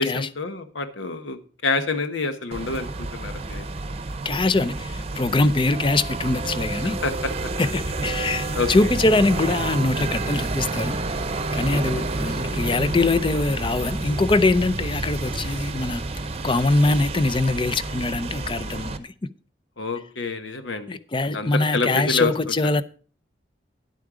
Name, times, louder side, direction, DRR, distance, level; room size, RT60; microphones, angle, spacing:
voice 1, 0.0-3.7 7.0-7.3 8.5-8.7 11.7-12.0 19.8-21.0 21.3-22.5, left 3 dB, 85° left, 1.1 m, -27 dB
sound 1, 2.5-19.0, right 2 dB, 35° right, 0.8 m, -29 dB
voice 2, 4.2-7.0 7.6-11.0 11.5-16.0 16.4-19.1 20.9-22.8, left 2 dB, 25° left, 0.5 m, -23 dB
10.5 x 8.5 x 4.9 m
head